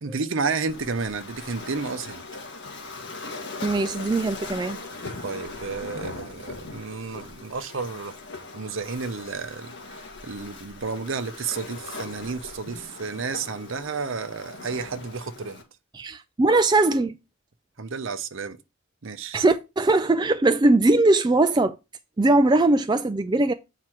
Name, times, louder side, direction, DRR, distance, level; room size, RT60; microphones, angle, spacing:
voice 1, 0.0-2.2 5.2-8.1 8.5-15.6 17.8-18.6 19.0-19.4, right 4 dB, 60° right, 0.7 m, -31 dB
Waves surf, 0.7-15.6, left 3 dB, 55° left, 1.7 m, -39 dB
voice 2, 3.6-4.8 15.9-17.2 19.3-21.8 22.2-23.5, right 2 dB, 20° right, 0.3 m, -20 dB
8.0 x 4.8 x 4.5 m
head